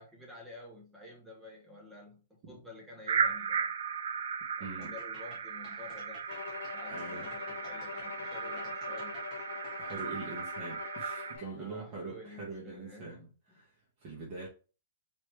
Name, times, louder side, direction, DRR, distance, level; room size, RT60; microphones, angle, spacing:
voice 1, 0.0-3.7 4.6-6.3 6.7-9.3 11.6-13.6, left 2 dB, 5° right, 1.0 m, -50 dB
sound 1, 3.1-11.4, right 6 dB, 70° right, 0.8 m, -36 dB
sound 2, 4.8-10.3, left 3 dB, 20° left, 1.4 m, -55 dB
Bowed string instrument, 6.3-11.6, left 7 dB, 90° left, 0.3 m, -44 dB
voice 2, 6.9-7.3 9.8-14.5, right 3 dB, 25° right, 1.2 m, -43 dB
4.8 x 3.0 x 3.3 m
hypercardioid pair, 180°, 0 cm